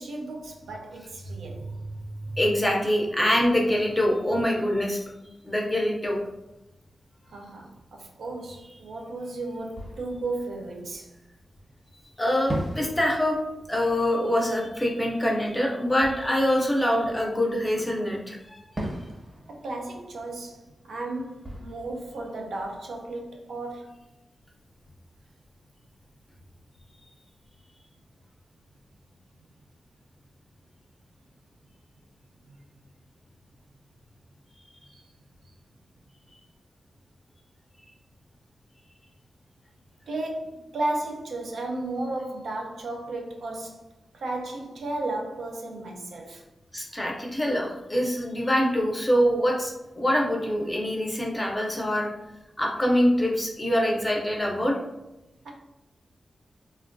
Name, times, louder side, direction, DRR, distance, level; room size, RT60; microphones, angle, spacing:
voice 1, 0.0-1.6 7.3-11.1 19.5-24.0 34.9-35.0 40.1-43.9 44.1-46.4 55.4-55.5, right 2 dB, 90° right, 0.5 m, -34 dB
voice 2, 2.2-5.1 5.4-6.2 12.2-13.4 13.7-18.6 46.7-52.1 52.6-54.8, equal, 10° left, 0.5 m, -24 dB
Fireworks, 9.7-11.7 12.5-17.8 18.8-23.5, right 1 dB, 25° right, 0.7 m, -40 dB
3.3 x 2.2 x 2.5 m
wide cardioid pair, 140°, 0 cm